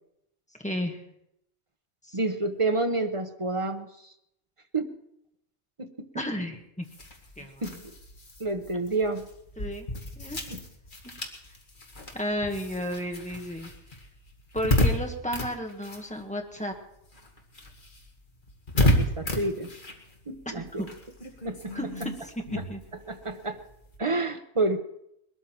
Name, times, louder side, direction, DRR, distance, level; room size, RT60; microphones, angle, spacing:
voice 1, 0.6-1.0 2.0-2.2 6.1-6.8 7.4-7.8 9.6-9.9 10.2-10.4 11.0-11.1 12.1-13.7 14.5-16.7 20.4-20.9 21.7-22.3 22.7-22.8, equal, 5° left, 2 dB, 1.7 m, -33 dB
voice 2, 2.1-3.9 4.7-4.9 5.8-5.9 7.6-7.7 8.4-9.3 10.5-10.6 18.8-19.7 20.3-20.8 21.4-21.7 23.1-23.6 24.0-24.8, right 2 dB, 30° right, 7 dB, 1.0 m, -28 dB
sound 1, 6.8-16.7 17.0-24.0, left 1 dB, 45° left, 2.1 m, -32 dB
21.0 x 13.0 x 4.6 m, 0.79 s
omnidirectional pair, 1.2 m